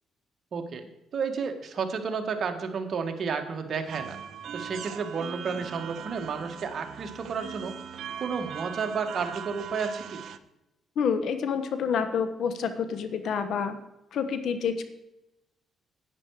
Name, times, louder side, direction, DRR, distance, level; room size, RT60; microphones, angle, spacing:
voice 1, 0.5-0.8 1.1-4.2 4.5-7.8 8.2-10.2, right 5 dB, 55° right, 6 dB, 1.6 m, -31 dB
sound 1, 3.9-10.4, right 8 dB, 70° right, 0.7 m, -40 dB
voice 2, 11.0-13.8 14.1-14.8, left 6 dB, 70° left, 10 dB, 1.1 m, -28 dB
10.5 x 9.2 x 4.8 m, 0.91 s
cardioid pair, 90°, 0 cm